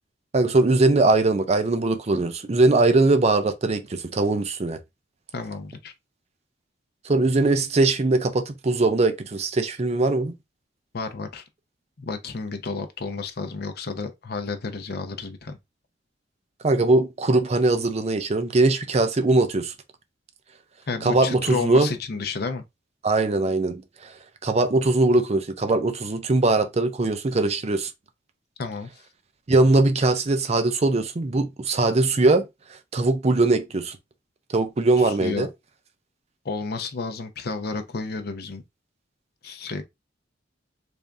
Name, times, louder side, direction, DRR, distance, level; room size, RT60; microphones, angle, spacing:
voice 1, 0.3-4.8 7.0-10.3 16.6-19.7 21.0-21.9 23.0-24.1 24.4-27.9 29.5-32.5 32.9-34.0 34.5-35.5, right 2 dB, 35° right, 0.5 m, -21 dB
voice 2, 5.3-5.9 10.9-11.4 12.0-15.6 20.9-22.6 28.6-28.9 35.0-35.5 36.4-38.6 39.4-39.8, left 4 dB, 55° left, 0.6 m, -31 dB
3.4 x 2.6 x 3.4 m
head